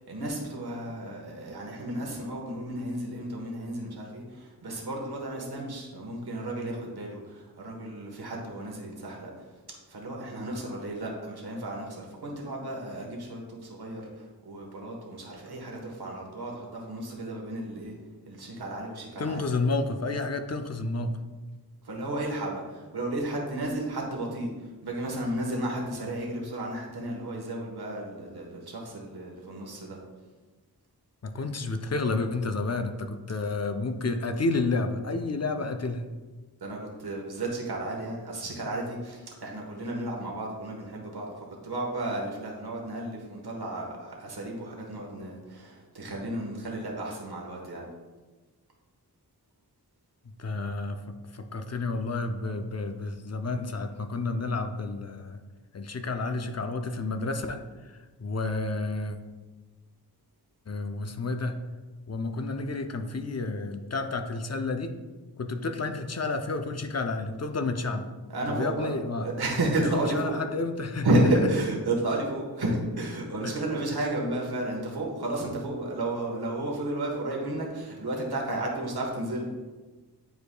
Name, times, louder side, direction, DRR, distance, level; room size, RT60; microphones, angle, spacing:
voice 1, 0.1-9.3 9.9-17.9 18.3-19.4 21.8-24.5 24.8-30.0 36.6-41.3 41.6-47.8 68.3-68.9 69.2-70.3 71.0-79.7, right 1 dB, 70° right, -1 dB, 1.3 m, -32 dB
voice 2, 19.2-21.2 31.2-36.0 50.4-51.0 51.3-55.4 55.7-57.9 58.2-59.2 60.7-61.6 62.1-64.9 65.4-68.1 68.5-69.3 69.8-71.1 73.4-73.5, left 3 dB, 40° left, 6 dB, 0.5 m, -30 dB
9.3 x 4.8 x 2.2 m, 1.3 s
wide cardioid pair, 80°, 39 cm